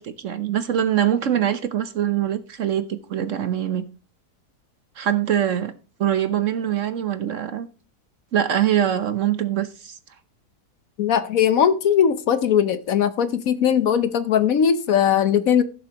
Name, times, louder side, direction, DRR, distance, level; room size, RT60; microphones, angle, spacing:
voice 1, 0.0-3.8 5.0-5.7 6.0-7.7 8.3-10.0, right 10 dB, 60° right, 1.0 m, -23 dB
voice 2, 11.0-15.6, left 8 dB, 65° left, 1.2 m, -19 dB
16.5 x 7.0 x 2.9 m
omnidirectional pair, 1.7 m